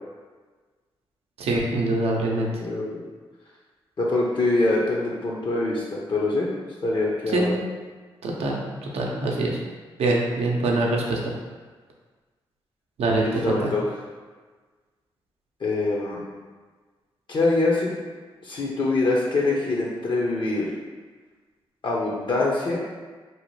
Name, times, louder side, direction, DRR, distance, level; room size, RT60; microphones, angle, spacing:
voice 1, 1.4-2.5 7.3-7.5 8.2-9.6 10.0-11.2 13.0-13.5, right 2 dB, 80° right, -1 dB, 0.5 m, -24 dB
voice 2, 2.6-3.0 4.0-6.5 6.8-7.5 13.2-13.8 15.6-16.2 17.3-17.9 18.4-20.7 21.8-22.8, left 2 dB, 50° left, -4 dB, 0.6 m, -24 dB
2.8 x 2.1 x 3.1 m, 1.4 s
cardioid pair, 65°, 10 cm